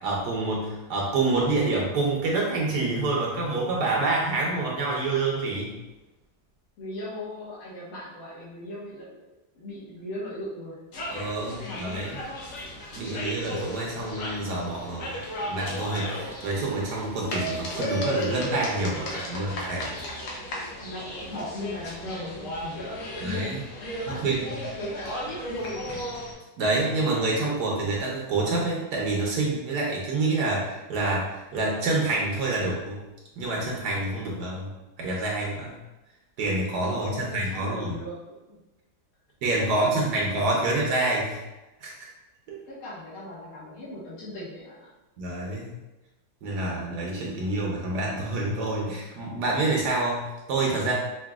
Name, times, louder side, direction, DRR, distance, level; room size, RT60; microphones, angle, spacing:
voice 1, 0.0-5.8 11.1-12.2 12.9-15.2 15.5-20.0 23.2-23.6 24.1-24.6 26.6-33.0 33.4-34.7 35.0-35.8 36.4-38.0 39.4-41.4 41.8-42.1 42.5-42.6 45.2-45.8 46.4-50.9, right 2 dB, 70° right, -3 dB, 1.4 m, -27 dB
voice 2, 6.8-9.2 9.5-10.9 11.5-12.1 20.8-25.9 36.8-38.6 39.6-40.5 42.7-44.9, left 1 dB, 55° left, -8 dB, 1.6 m, -38 dB
sound 1, 10.9-26.3, equal, 85° left, 1.5 m, -35 dB
5.8 x 2.5 x 2.3 m, 1.0 s
omnidirectional pair, 1.9 m